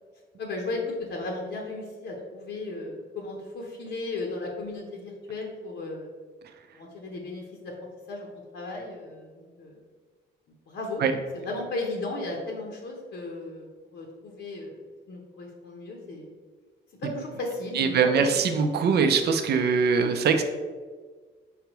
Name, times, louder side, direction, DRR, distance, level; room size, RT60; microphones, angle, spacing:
voice 1, 0.4-6.1 6.7-7.7 8.1-8.3 8.5-9.8 10.7-11.0 11.3-16.3 17.0-18.3, left 2 dB, 65° left, 0 dB, 0.8 m, -35 dB
voice 2, 17.7-20.4, right 5 dB, 55° right, 7 dB, 0.5 m, -22 dB
4.9 x 3.4 x 3.0 m, 1.5 s
cardioid pair, 90°, 20 cm